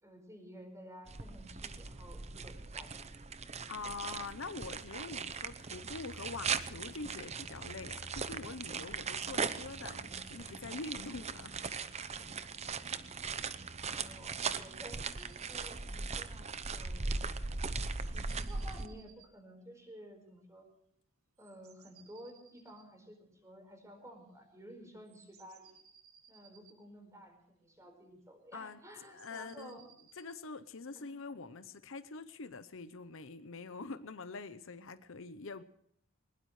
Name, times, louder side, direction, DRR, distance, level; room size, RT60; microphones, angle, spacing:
voice 1, 0.0-3.1 3.5-3.6 13.8-17.2 18.1-20.7 21.4-25.7 26.3-29.8 30.9-31.1, equal, 15° right, 4.6 m, -53 dB
sound 1, 1.1-18.9, right 5 dB, 30° right, 0.8 m, -39 dB
voice 2, 3.7-11.5 28.5-28.8 29.1-29.8 30.2-35.6, left 4 dB, 60° left, 0.8 m, -45 dB
sound 2, 15.2-15.7 17.7-19.3 21.4-22.9 24.9-26.8 28.9-30.4, right 8 dB, 80° right, 2.2 m, -63 dB
21.5 x 20.5 x 3.3 m
head